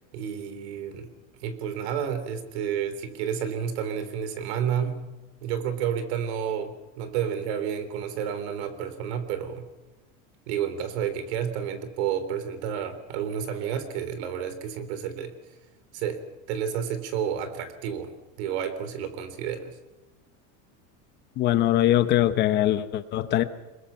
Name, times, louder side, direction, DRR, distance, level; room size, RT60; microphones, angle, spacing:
voice 1, 0.1-1.1 1.4-5.1 5.4-9.7 10.5-15.3 15.9-16.2 16.5-18.1 18.4-19.8, right 8 dB, 70° right, 3.6 m, -30 dB
voice 2, 21.4-23.4, left 13 dB, 30° left, 1.0 m, -22 dB
25.5 x 22.0 x 5.8 m
cardioid pair, 180°, 33 cm